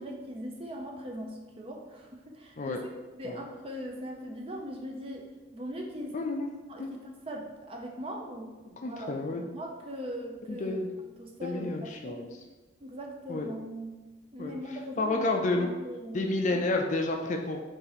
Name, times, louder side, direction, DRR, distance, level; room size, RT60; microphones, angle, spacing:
voice 1, 0.0-2.8 3.2-5.3 5.5-6.2 6.7-10.8 11.2-12.2 12.8-14.0 14.3-15.3 15.6-16.6, equal, 30° right, 0 dB, 0.5 m, -40 dB
voice 2, 6.1-6.5 6.8-6.9 8.8-9.4 10.5-10.9 11.4-12.3 13.3-13.5 14.4-14.6 15.0-15.7 16.1-17.6, left 2 dB, 40° left, 3 dB, 0.4 m, -30 dB
4.3 x 2.6 x 4.0 m, 1.2 s
head